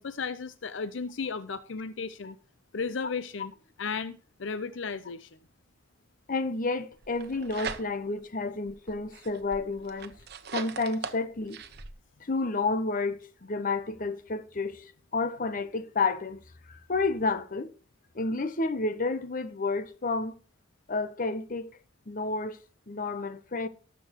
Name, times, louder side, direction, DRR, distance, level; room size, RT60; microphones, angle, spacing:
voice 1, 0.0-2.4 2.7-5.3, left 5 dB, 70° left, 0.6 m, -35 dB
voice 2, 6.3-10.1 10.5-11.6 12.2-16.4 16.7-17.7 18.1-20.3 20.9-21.7 22.1-22.6 22.9-23.7, left 3 dB, 45° left, 0.9 m, -30 dB
sound 1, 7.0-8.2 8.7-11.9, right 5 dB, 55° right, 1.0 m, -40 dB
19.5 x 6.9 x 3.0 m
head